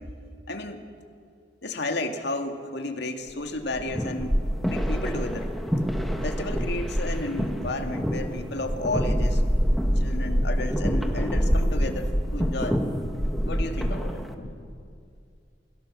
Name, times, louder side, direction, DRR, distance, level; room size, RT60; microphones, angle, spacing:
voice 1, 0.5-0.8 1.6-5.5 6.2-9.4 10.0-12.8 13.4-14.7, left 2 dB, 65° left, 5 dB, 2.3 m, -32 dB
sound 1, 3.6-14.3, equal, ahead, 1.8 m, -26 dB
29.5 x 22.0 x 7.6 m, 2.4 s
head